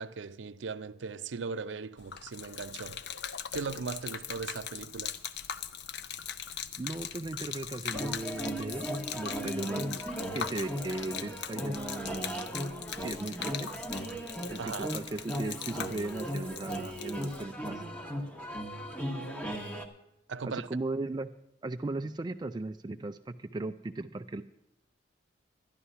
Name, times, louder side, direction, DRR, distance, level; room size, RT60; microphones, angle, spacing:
voice 1, 0.0-3.0 3.5-5.2 14.6-14.9 20.3-20.7, right 5 dB, 75° right, 0.5 m, -38 dB
Gurgling / Liquid, 2.0-17.4, left 8 dB, 65° left, 0.6 m, -41 dB
voice 2, 6.8-10.0 10.3-12.6 13.0-13.7 14.5-17.8 20.4-21.3 21.6-24.4, right 2 dB, 25° right, 0.4 m, -37 dB
sound 1, 7.9-19.9, equal, 10° left, 1.2 m, -37 dB
11.5 x 11.5 x 5.6 m
head